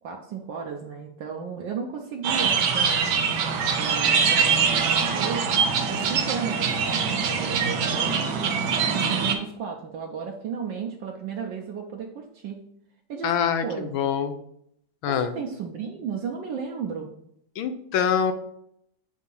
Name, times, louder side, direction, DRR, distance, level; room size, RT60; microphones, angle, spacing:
voice 1, 0.0-3.3 3.8-5.5 5.9-8.7 8.9-12.6 13.1-14.1 15.1-17.1, right 6 dB, 75° right, 1 dB, 1.3 m, -34 dB
sound 1, 2.2-9.3, right 6 dB, 90° right, 1.6 m, -23 dB
voice 2, 13.2-14.4 15.0-15.3 17.6-18.3, left 8 dB, 85° left, 10 dB, 1.4 m, -25 dB
8.0 x 2.8 x 5.3 m, 0.72 s
omnidirectional pair, 2.1 m